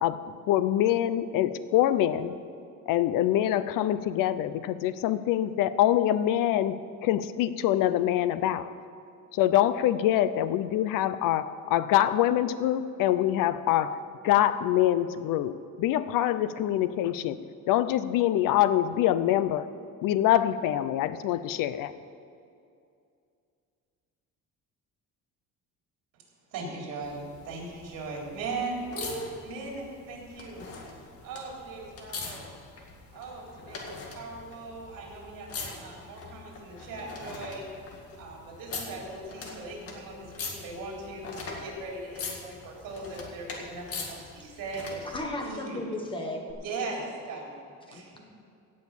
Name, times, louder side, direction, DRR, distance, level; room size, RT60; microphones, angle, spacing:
voice 1, 0.0-2.4 2.9-6.8 7.0-8.7 9.3-17.4 17.7-19.7 20.0-21.9, left 12 dB, 80° left, 14 dB, 0.7 m, -25 dB
voice 2, 26.5-30.7 31.2-32.5 33.1-37.7 38.2-45.8 46.6-48.2, right 3 dB, 75° right, -2 dB, 3.9 m, -39 dB
sound 1, 27.0-45.2 46.5-46.6, left 4 dB, 45° left, 1.9 m, -42 dB
voice 3, 45.1-46.5 47.9-48.2, left 1 dB, 15° left, 2 dB, 1.4 m, -35 dB
17.0 x 6.4 x 7.1 m, 2.4 s
cardioid pair, 180°, 32 cm